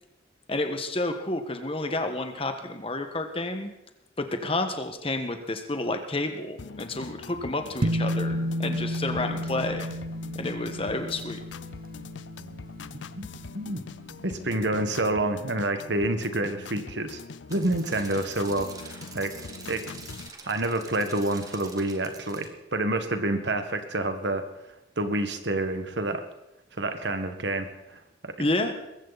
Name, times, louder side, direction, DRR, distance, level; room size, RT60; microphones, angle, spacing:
voice 1, 0.5-3.7 4.2-9.9 10.3-11.4 28.4-28.7, left 2 dB, 30° left, 6 dB, 1.6 m, -30 dB
sound 1, 6.6-20.3, left 4 dB, 75° left, 0.6 m, -43 dB
sound 2, 7.8-14.4, equal, 50° right, 0.9 m, -32 dB
voice 2, 13.2-13.8 14.2-17.2 17.5-19.3 19.7-19.8 20.5-24.4 24.9-26.2 26.8-28.3, right 2 dB, 65° right, 8 dB, 1.7 m, -28 dB
sound 3, 17.5-22.5, right 4 dB, 20° right, 1.6 m, -46 dB
22.0 x 15.0 x 4.2 m, 0.92 s
head